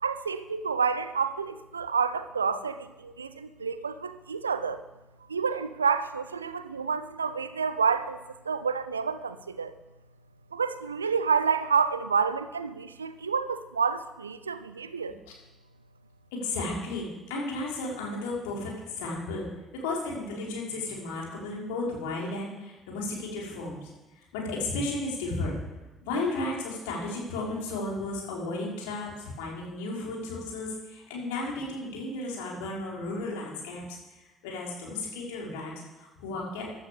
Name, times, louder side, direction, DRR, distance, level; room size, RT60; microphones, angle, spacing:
voice 1, 0.0-4.8 5.3-8.2 8.5-9.7 10.5-15.2, right 5 dB, 85° right, 13 dB, 0.6 m, -29 dB
voice 2, 16.3-19.5 19.8-23.9 24.2-25.5 26.1-34.0 34.4-36.7, left 2 dB, 70° left, -2 dB, 4.5 m, -34 dB
15.5 x 11.5 x 6.7 m, 1.1 s
figure-of-eight pair, 50°, 0 cm